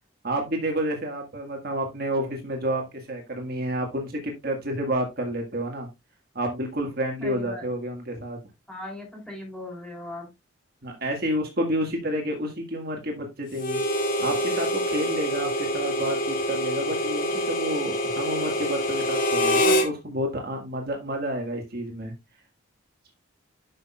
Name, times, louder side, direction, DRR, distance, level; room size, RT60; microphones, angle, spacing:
voice 1, 0.2-2.8 3.1-5.9 6.3-8.4 10.8-13.8 14.2-22.1, right 1 dB, 50° right, 2 dB, 1.8 m, -30 dB
voice 2, 7.2-7.6 8.7-10.3, left 2 dB, 5° left, 0 dB, 3.2 m, -38 dB
Harmonica, 13.6-19.9, equal, 45° left, 1.7 m, -25 dB
11.0 x 5.9 x 2.4 m, 0.23 s
head